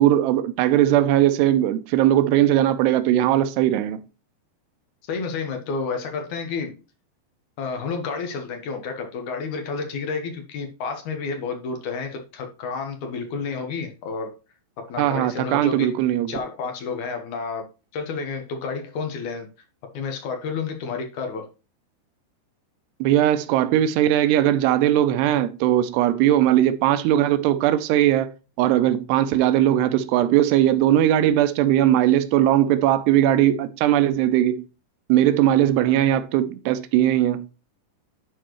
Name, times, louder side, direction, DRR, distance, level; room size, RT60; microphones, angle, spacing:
voice 1, 0.0-4.0 15.0-16.3 23.0-28.3 28.6-34.6 35.1-37.5, right 12 dB, 90° right, 2.8 m, -19 dB
voice 2, 5.1-6.8 7.6-14.4 14.8-15.9 16.3-17.7 17.9-19.5 19.9-21.5 35.6-35.7, left 5 dB, 65° left, 2.0 m, -30 dB
11.5 x 4.4 x 3.1 m
omnidirectional pair, 4.7 m